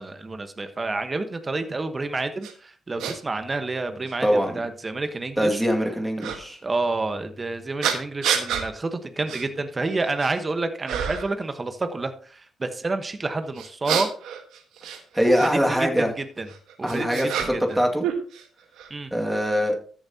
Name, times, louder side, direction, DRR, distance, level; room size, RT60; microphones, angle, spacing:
voice 1, 0.0-5.6 6.2-6.3 6.6-14.1 15.2-16.5 16.8-17.8 18.9-19.1, right 3 dB, 25° right, 8 dB, 1.2 m, -29 dB
sound 1, 2.4-2.5 3.0-3.1 4.0-4.1 6.2-6.4 7.8-8.7 9.3-9.4 9.9-10.4 10.9-11.3 13.6-15.5 16.5-17.8 18.0-18.9, right 8 dB, 85° right, 1.4 m, -28 dB
voice 2, 4.2-4.6 5.4-6.6 15.1-16.1 16.8-18.0 19.1-19.8, equal, 5° right, 1 dB, 2.2 m, -23 dB
13.5 x 7.4 x 2.9 m, 0.42 s
cardioid pair, 90°, 0 cm